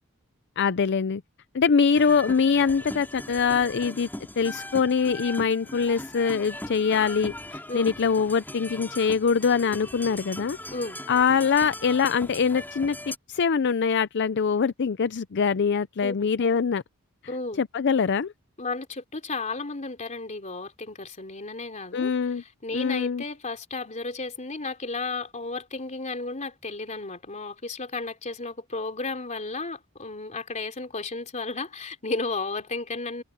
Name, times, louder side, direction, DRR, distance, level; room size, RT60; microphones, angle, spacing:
voice 1, 0.6-1.2 1.5-4.1 4.4-10.6 11.1-16.8 17.6-18.3 21.9-22.4 22.7-23.2, left 6 dB, 55° left, 0.5 m, -23 dB
sound 1, 1.9-13.2, left 1 dB, 10° left, 4.2 m, -39 dB
voice 2, 17.3-17.6 18.6-33.2, left 3 dB, 35° left, 3.5 m, -33 dB
head